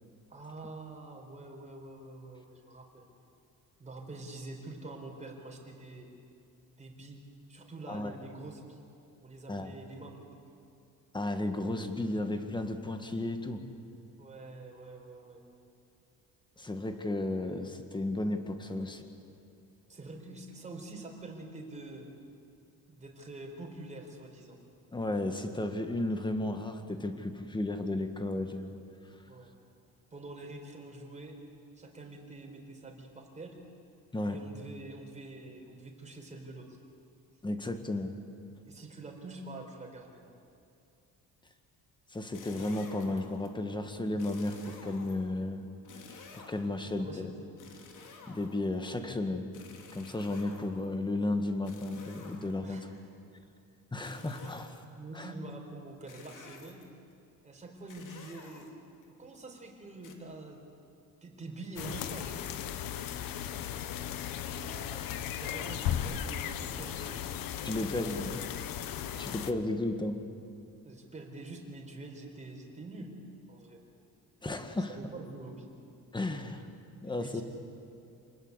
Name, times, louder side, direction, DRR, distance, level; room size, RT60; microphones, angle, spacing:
voice 1, 0.3-3.1 3.8-6.1 6.8-7.2 7.5-8.8 9.2-10.3 14.2-15.4 18.8-18.9 19.9-22.1 22.9-24.6 29.3-29.5 30.1-31.4 31.8-33.6 34.3-36.8 38.6-40.2 46.8-47.3 52.6-53.0 55.0-56.9 57.4-58.7 59.0-60.6 61.2-62.5 64.5-67.3 67.8-68.4 70.8-73.2 73.5-73.8 74.9-75.7 77.0-77.4, right 2 dB, 20° right, 1 dB, 4.3 m, -46 dB
voice 2, 11.1-13.6 16.6-19.0 24.9-28.7 34.1-34.4 37.4-38.1 42.1-45.7 46.3-47.3 48.3-49.5 49.9-52.8 53.9-54.7 55.2-55.3 67.6-68.3 69.2-70.2 74.4-75.0 76.1-76.7 77.0-77.4, left 2 dB, 15° left, 7 dB, 1.9 m, -33 dB
sound 1, 42.3-43.5 44.2-45.4 45.8-46.8 47.6-48.8 49.5-51.0 51.6-52.8 54.0-54.9 56.1-57.0 57.9-59.0 60.0-60.2, left 4 dB, 65° left, 3.0 m, -51 dB
sound 2, 61.8-69.5, left 10 dB, 85° left, 1.2 m, -36 dB
27.5 x 20.0 x 8.2 m, 2.6 s
cardioid pair, 130°, 33 cm